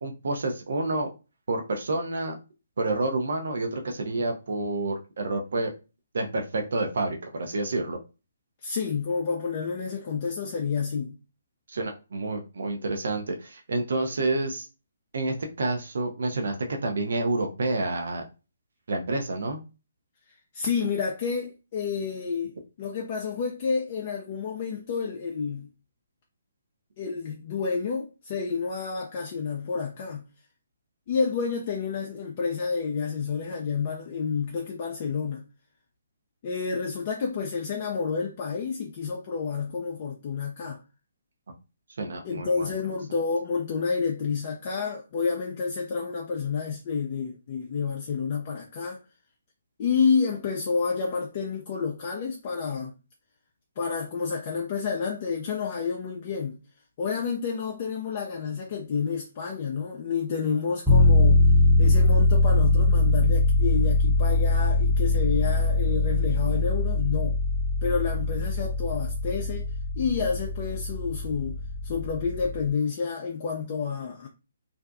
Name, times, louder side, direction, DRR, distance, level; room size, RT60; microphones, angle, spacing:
voice 1, 0.0-1.1 1.5-2.4 2.8-5.7 6.1-8.0 11.7-14.7 15.1-16.6 16.8-18.2 18.9-19.6 42.0-42.7, right 2 dB, 60° right, 0.6 m, -29 dB
voice 2, 8.6-11.2 20.5-25.7 27.0-30.2 31.1-35.4 36.4-40.8 42.2-49.0 49.8-52.9 53.8-56.6 57.0-61.5 61.8-67.4 67.8-69.7 70.0-71.6 71.8-74.3, left 5 dB, 40° left, 0.4 m, -29 dB
sound 1, 60.9-72.7, left 2 dB, ahead, 0.6 m, -22 dB
2.5 x 2.1 x 2.4 m
figure-of-eight pair, 135°, 0 cm